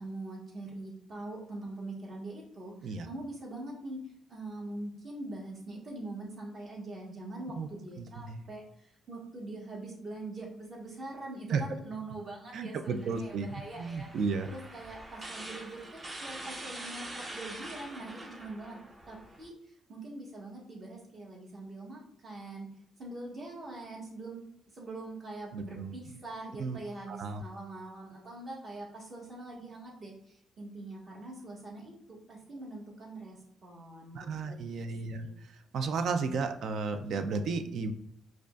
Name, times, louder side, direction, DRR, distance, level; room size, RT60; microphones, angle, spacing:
voice 1, 0.0-4.0 4.3-14.1 14.4-18.8 19.1-22.7 23.0-24.4 24.7-35.3, right 2 dB, 45° right, -3 dB, 1.4 m, -43 dB
voice 2, 8.0-8.5 11.5-11.6 12.5-13.5 13.8-14.5 25.5-25.9 26.6-26.8 27.1-27.4 34.1-37.9, right 4 dB, 65° right, 8 dB, 0.4 m, -33 dB
sound 1, 13.0-19.5, right 1 dB, 25° right, 0.7 m, -45 dB
4.9 x 2.3 x 2.4 m, 0.76 s
cardioid pair, 90°, 0 cm